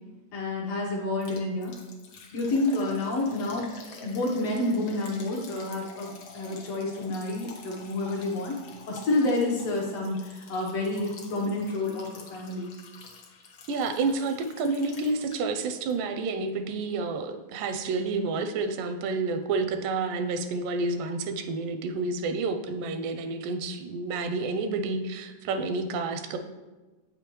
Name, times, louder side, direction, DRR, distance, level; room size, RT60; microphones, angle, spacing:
voice 1, 0.3-1.8 2.3-3.7 4.0-8.6 8.9-12.7, left 2 dB, 70° left, -1 dB, 1.6 m, -29 dB
Liquid, 1.2-15.6 15.9-16.0 16.5-16.6, left 3 dB, 85° left, 1.1 m, -48 dB
voice 2, 13.7-26.4, right 3 dB, 85° right, 7 dB, 2.2 m, -29 dB
8.4 x 6.7 x 3.0 m, 1.2 s
omnidirectional pair, 3.8 m